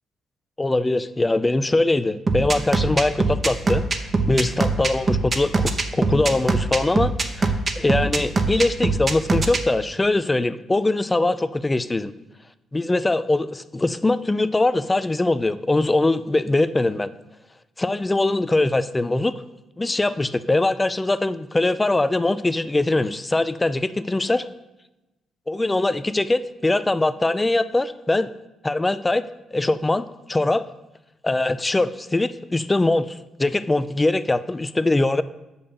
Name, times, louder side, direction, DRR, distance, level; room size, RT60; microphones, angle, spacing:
voice 1, 0.6-3.8 4.3-12.1 12.7-17.1 17.8-19.3 19.8-24.4 25.5-28.3 28.6-29.2 29.5-30.7 31.2-35.2, left 2 dB, 20° left, 14 dB, 0.4 m, -22 dB
sound 1, 2.3-9.6, right 3 dB, 40° right, 0.9 m, -22 dB
6.6 x 5.4 x 7.0 m, 1.0 s
cardioid pair, 75°, 0 cm